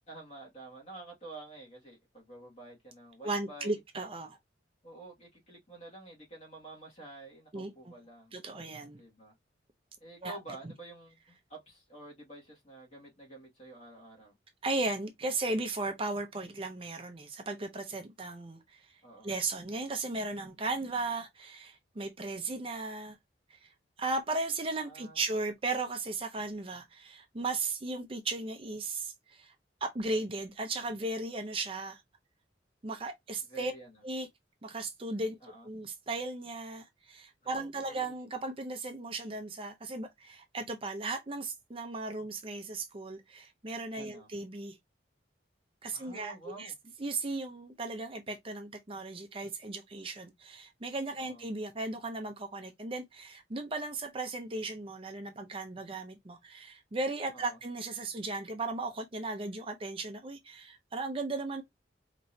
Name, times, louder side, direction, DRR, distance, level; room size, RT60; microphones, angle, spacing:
voice 1, 0.1-3.8 4.8-8.4 8.9-9.4 10.0-14.3 19.0-19.3 24.8-25.2 33.5-34.0 35.4-35.7 37.4-38.1 44.0-44.3 45.9-46.8 51.2-51.4 57.3-57.6, right 2 dB, 35° left, 2.0 m, -49 dB
voice 2, 3.2-4.4 7.5-7.7 8.3-9.0 10.2-10.4 14.6-18.9 19.2-23.2 23.5-23.6 24.0-29.5 29.8-32.0 32.8-33.7 34.0-34.3 34.6-35.4 35.6-44.8 45.8-46.7 47.0-61.6, right 2 dB, 30° right, 0.5 m, -36 dB
4.3 x 3.0 x 2.7 m
head